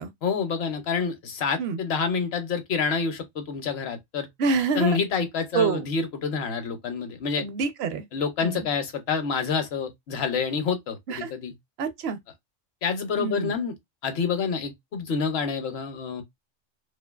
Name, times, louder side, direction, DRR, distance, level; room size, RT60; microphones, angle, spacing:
voice 1, 0.2-4.3 4.7-7.5 8.1-11.5 12.8-13.7 14.0-16.2, left 5 dB, 60° left, 0.8 m, -27 dB
voice 2, 4.4-5.0 5.5-5.9 7.4-8.0 8.4-8.7 11.1-11.3 11.8-12.2 13.2-13.5, right 5 dB, 65° right, 0.7 m, -26 dB
2.6 x 2.4 x 2.2 m
omnidirectional pair, 1.3 m